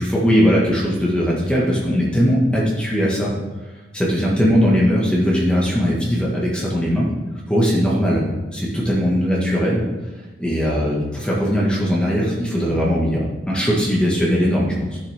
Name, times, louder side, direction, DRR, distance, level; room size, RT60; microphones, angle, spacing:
voice 1, 0.0-3.3 3.9-7.1 7.5-8.2 8.5-9.8 10.4-15.0, equal, 5° left, -5 dB, 1.7 m, -19 dB
12.5 x 7.5 x 3.6 m, 1.2 s
head